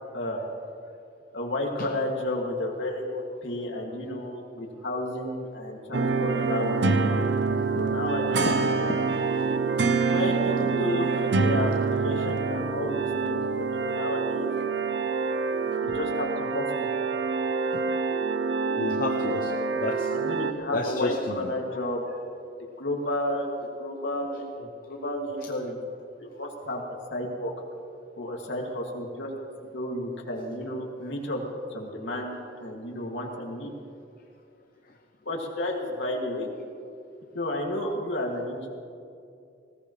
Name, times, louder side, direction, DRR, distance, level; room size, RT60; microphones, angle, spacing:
voice 1, 1.3-8.5 10.0-14.5 15.8-16.9 20.1-22.0 22.8-23.5 23.8-25.8 26.2-27.5 28.2-29.3 29.7-33.7 35.2-36.5 37.3-38.7, left 1 dB, 85° left, -1 dB, 2.5 m, -32 dB
sound 1, 5.9-20.5, right 4 dB, 70° right, 0.8 m, -26 dB
voice 2, 18.8-20.1 20.7-21.5, left 2 dB, 50° left, 3 dB, 0.8 m, -31 dB
19.5 x 17.0 x 3.3 m, 2.5 s
head